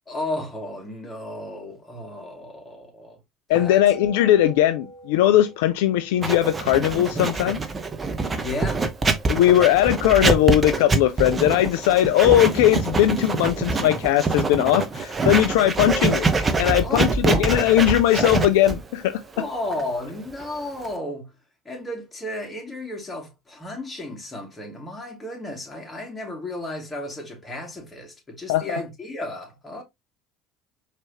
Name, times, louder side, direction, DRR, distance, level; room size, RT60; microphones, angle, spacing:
voice 1, 0.1-3.2 3.5-3.8 8.4-8.9 16.8-17.4 19.4-21.3 21.6-29.8, left 1 dB, 15° left, 2.3 m, -33 dB
voice 2, 3.5-7.6 9.3-19.2 28.5-28.6, left 12 dB, 65° left, 0.3 m, -19 dB
sound 1, 3.5-8.2, equal, 35° left, 1.0 m, -43 dB
Writing, 6.2-21.0, right 3 dB, 25° right, 0.8 m, -25 dB
4.5 x 3.2 x 2.9 m
figure-of-eight pair, 65°, 0 cm